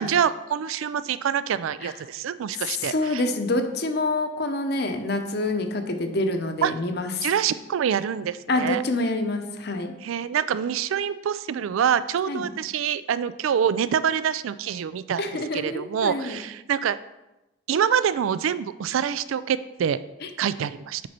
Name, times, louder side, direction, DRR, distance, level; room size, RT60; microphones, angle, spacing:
voice 1, 0.0-3.2 6.6-6.7 7.2-8.8 10.0-15.2 15.5-17.0 17.7-20.0 20.4-21.0, right 8 dB, 80° right, 15 dB, 0.3 m, -25 dB
voice 2, 2.6-7.3 8.5-9.9 12.3-12.4 15.2-16.4 20.2-20.3, left 2 dB, 50° left, 6 dB, 0.8 m, -27 dB
7.7 x 5.4 x 4.4 m, 0.98 s
head